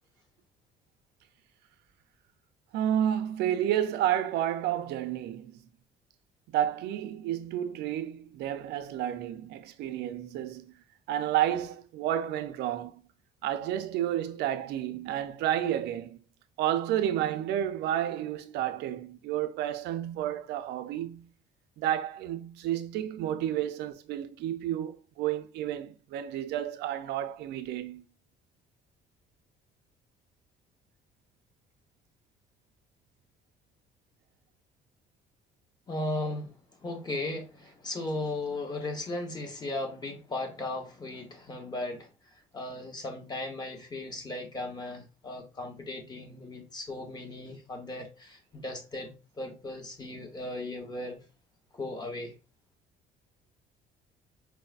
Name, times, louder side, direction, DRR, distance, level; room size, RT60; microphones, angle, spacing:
voice 1, 2.7-5.6 6.5-13.0 13.4-16.2 16.6-21.3 21.8-28.0, right 11 dB, 80° right, 0.5 m, -31 dB
voice 2, 35.9-51.2 51.7-52.3, left 2 dB, 25° left, 0.9 m, -37 dB
4.6 x 2.0 x 2.4 m
cardioid pair, 110°, 17 cm